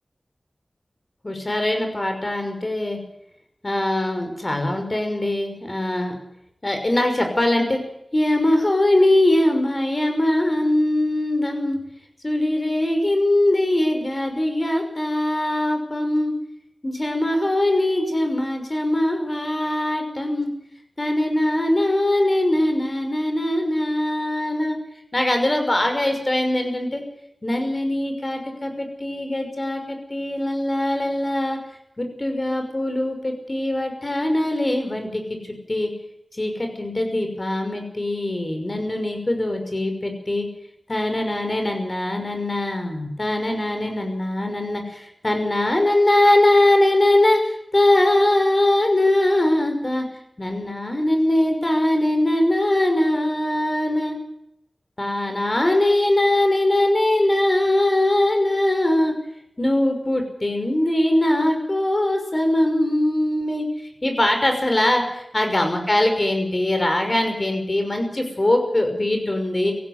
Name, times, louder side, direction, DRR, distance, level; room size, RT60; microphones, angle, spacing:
voice 1, 1.2-3.0 3.6-6.1 6.6-7.8 8.1-11.8 12.2-16.3 16.8-20.5 21.0-24.8 25.1-27.0 27.4-31.6 32.0-35.9 36.3-40.5 40.9-50.1 50.4-54.2 55.0-59.1 59.6-63.7 64.0-69.7, left 1 dB, 35° left, 5 dB, 5.8 m, -21 dB
18.5 x 15.5 x 9.5 m, 0.80 s
wide cardioid pair, 75°, 0 cm